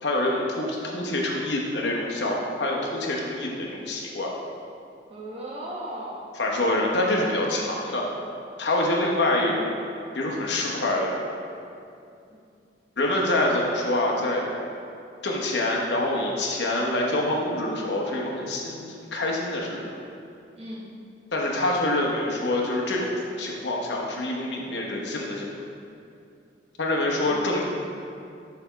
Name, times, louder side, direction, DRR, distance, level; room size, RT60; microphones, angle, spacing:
voice 1, 0.0-4.3 6.4-8.1 8.6-9.7 10.1-11.2 13.0-14.5 15.2-18.8 19.1-19.9 21.3-25.5 26.8-27.6, left 1 dB, 70° left, -2 dB, 1.0 m, -26 dB
voice 2, 5.1-6.3 10.4-10.7 12.3-12.4 20.6-20.9 26.9-27.6, right 1 dB, 35° right, -4 dB, 1.1 m, -37 dB
6.7 x 3.5 x 5.6 m, 2.5 s
head